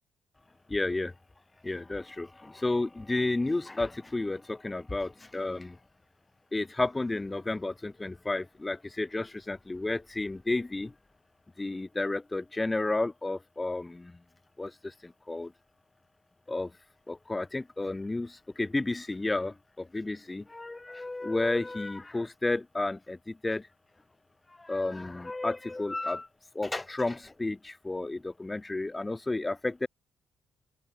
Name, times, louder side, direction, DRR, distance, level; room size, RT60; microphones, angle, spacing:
voice 1, 0.7-1.1 1.6-5.8 6.5-10.9 11.6-14.2 14.6-15.5 16.5-16.7 17.1-23.7 24.6-26.3 26.5-29.9, left 2 dB, 15° left, 0.7 m, -32 dB
open air
cardioid pair, 90°, 0 cm